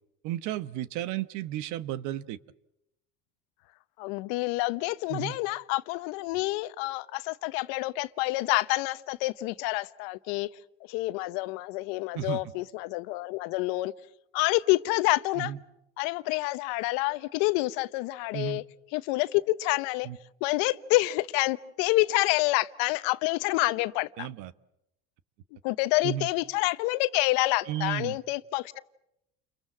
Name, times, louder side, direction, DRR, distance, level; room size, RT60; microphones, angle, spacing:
voice 1, 0.2-2.4 5.1-5.4 12.1-12.4 15.4-15.6 18.3-18.6 20.0-20.2 24.2-24.5 26.0-26.3 27.7-28.2, right 12 dB, 65° right, 1.2 m, -33 dB
voice 2, 4.0-10.5 10.9-13.9 14.3-15.5 16.0-18.6 18.9-20.1 20.4-24.3 25.6-28.8, left 20 dB, 75° left, 1.0 m, -28 dB
30.0 x 23.0 x 7.4 m
supercardioid pair, 100°, 31 cm